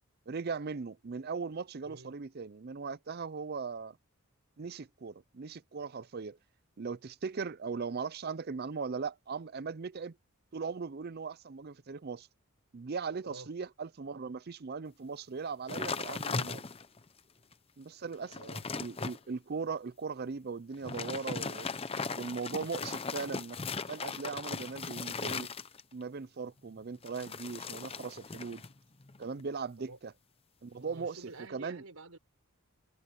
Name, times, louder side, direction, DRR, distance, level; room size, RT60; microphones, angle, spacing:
voice 1, 0.3-4.0 4.6-6.4 6.8-10.2 10.5-12.3 12.7-16.6 17.8-18.4 18.8-21.7 22.2-23.6 23.9-25.5 25.9-28.6 29.2-30.1 30.6-31.8, right 5 dB, 45° right, 0.5 m, -39 dB
voice 2, 1.8-2.1 13.2-13.5 18.3-18.7 29.8-30.0 30.8-32.2, right 2 dB, 85° right, 4.4 m, -49 dB
sound 1, 15.7-17.0 17.5-17.6 18.0-19.2 20.7-26.0 27.0-28.7 29.0-29.4, left 4 dB, 25° left, 0.7 m, -38 dB
head